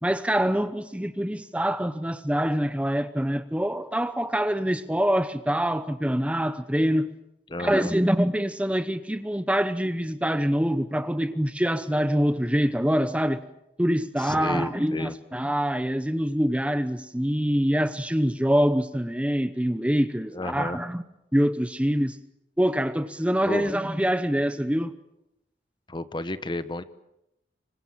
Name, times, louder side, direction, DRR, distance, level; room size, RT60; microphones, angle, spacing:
voice 1, 0.0-7.1 7.6-13.4 13.8-21.0 21.3-22.2 22.6-25.0, equal, 5° right, 0.9 m, -25 dB
voice 2, 7.5-7.9 14.2-15.1 20.3-20.8 23.4-23.7 25.9-26.8, left 1 dB, 25° left, 1.1 m, -32 dB
26.5 x 24.5 x 7.6 m
head